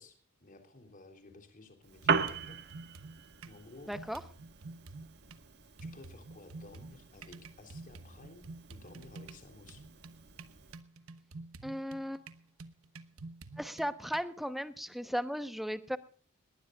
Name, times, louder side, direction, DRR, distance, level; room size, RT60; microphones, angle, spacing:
voice 1, 0.0-2.6 3.4-3.9 5.8-9.8, left 2 dB, 40° left, 5 dB, 3.4 m, -54 dB
sound 1, 1.3-1.4 2.0-3.6 3.9-5.4 5.8-14.2, right 3 dB, 75° right, 1.1 m, -49 dB
Piano, 1.8-10.8, right 5 dB, 50° right, 1.6 m, -39 dB
voice 2, 3.9-4.2 11.6-12.2 13.6-16.0, equal, ahead, 11 dB, 1.0 m, -36 dB
20.0 x 19.0 x 2.4 m, 0.41 s
head